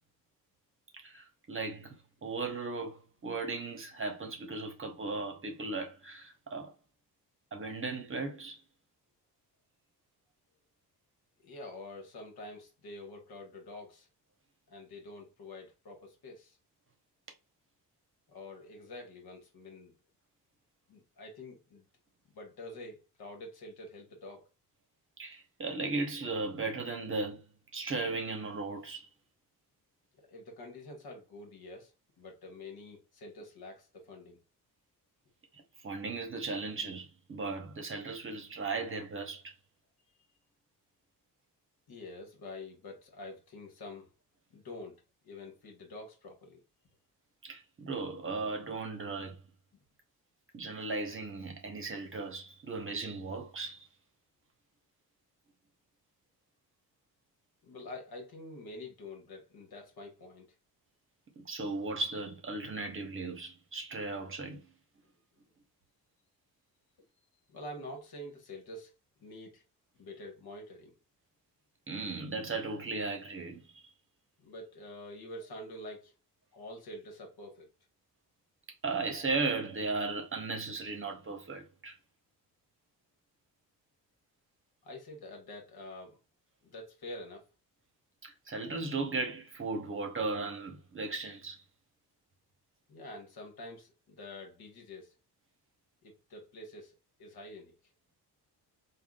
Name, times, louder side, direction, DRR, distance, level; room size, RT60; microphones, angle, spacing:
voice 1, 1.0-2.0 2.2-6.7 7.5-8.6 25.2-27.4 27.7-29.1 35.5-39.5 47.4-49.4 50.5-53.9 61.4-64.7 71.9-73.8 78.8-82.0 88.2-91.6, right 3 dB, 30° right, 0.9 m, -36 dB
voice 2, 11.4-14.1 14.7-16.6 18.3-20.0 20.9-21.8 22.3-24.5 30.1-31.9 32.2-34.4 40.1-40.3 41.9-44.1 44.5-46.6 49.7-49.8 57.6-60.5 67.5-68.9 69.2-69.6 70.0-70.9 74.4-76.1 76.5-77.7 84.8-86.2 86.6-87.5 92.9-95.1 96.0-96.9 97.2-97.7, left 1 dB, 65° left, 1.3 m, -47 dB
3.5 x 2.3 x 2.3 m
cardioid pair, 75°, 40 cm